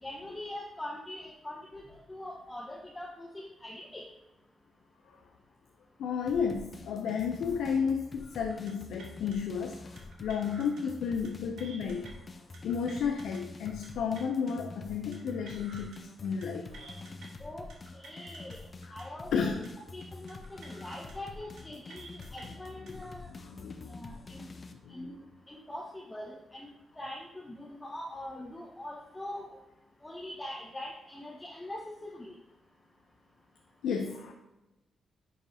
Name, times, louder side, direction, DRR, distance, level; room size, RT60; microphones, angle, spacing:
voice 1, 0.0-1.8 2.1-4.0 17.4-17.7 17.9-18.6 18.9-19.5 19.9-23.3 23.9-24.4 24.9-25.2 25.5-29.5 30.0-32.3, left 1 dB, 20° left, -3 dB, 1.1 m, -43 dB
voice 2, 6.0-12.3 12.6-17.0 19.3-19.6 22.8-23.9 24.8-25.2 33.8-34.3, left 6 dB, 75° left, 3 dB, 0.5 m, -33 dB
sound 1, 6.3-24.7, left 3 dB, 40° left, 0.8 m, -47 dB
sound 2, 8.5-8.7 9.0-9.4 10.0-10.8 11.1-11.3 11.6-12.1 12.5-13.4 13.7-13.9 14.1-14.5 15.1-16.0 16.2-16.5 16.7-17.3 17.7-18.6 18.8-19.0 19.3-19.7 20.3-21.1 21.4-21.6 21.9-22.4 22.9-23.1, right 3 dB, 75° right, 1.3 m, -51 dB
9.9 x 4.7 x 2.8 m, 1.0 s
hypercardioid pair, 40°, 0 cm